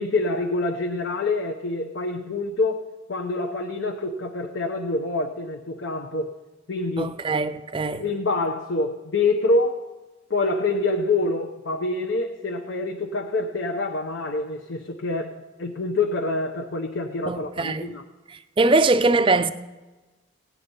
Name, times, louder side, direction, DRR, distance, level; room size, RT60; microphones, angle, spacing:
voice 1, 0.0-2.8 3.1-6.3 6.7-7.1 8.0-9.9 10.3-18.0, left 2 dB, 60° left, 0.8 m, -26 dB
voice 2, 7.0-8.0 17.3-18.0 18.6-19.5, right 3 dB, 25° right, 0.5 m, -21 dB
17.0 x 9.4 x 5.5 m
head